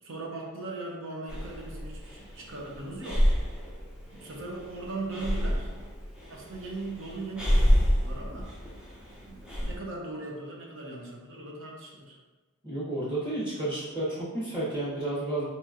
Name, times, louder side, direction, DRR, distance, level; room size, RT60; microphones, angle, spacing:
voice 1, 0.0-3.3 4.1-5.7 6.3-8.5 9.2-12.2, right 2 dB, 60° right, -1 dB, 0.7 m, -39 dB
Breathing, 1.3-9.8, equal, 5° right, 0.5 m, -29 dB
voice 2, 12.6-15.5, right 1 dB, 20° right, -9 dB, 1.0 m, -31 dB
4.2 x 3.0 x 2.4 m, 1.2 s
head